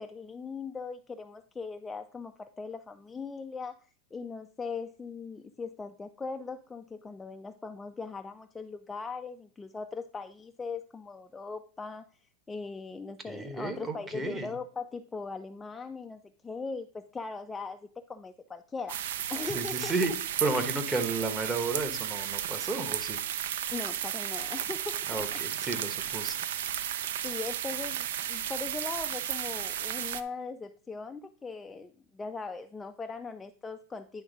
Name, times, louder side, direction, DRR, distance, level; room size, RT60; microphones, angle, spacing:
voice 1, 0.0-12.1 12.5-19.9 23.7-25.4 27.2-34.2, left 4 dB, 10° left, 7 dB, 0.3 m, -40 dB
voice 2, 13.2-14.5 19.4-20.1 20.4-23.2 25.1-26.4, right 3 dB, 15° right, 8 dB, 1.0 m, -32 dB
sound 1, 18.9-30.2, right 10 dB, 75° right, 0.5 m, -34 dB
9.9 x 3.6 x 5.1 m, 0.43 s
supercardioid pair, 145°, 0 cm